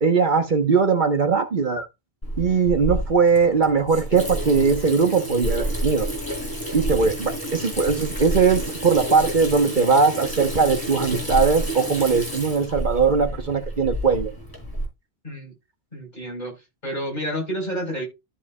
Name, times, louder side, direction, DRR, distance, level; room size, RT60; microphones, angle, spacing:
voice 1, 0.0-1.9 2.4-6.1 6.7-14.3, right 5 dB, 50° right, 1.2 m, -20 dB
Water tap faucet / Sink (filling or washing), 2.2-14.9, right 1 dB, 20° left, 4.0 m, -30 dB
voice 2, 15.9-16.5 16.8-18.0, equal, 45° left, 4.5 m, -29 dB
13.5 x 5.7 x 2.3 m
omnidirectional pair, 1.0 m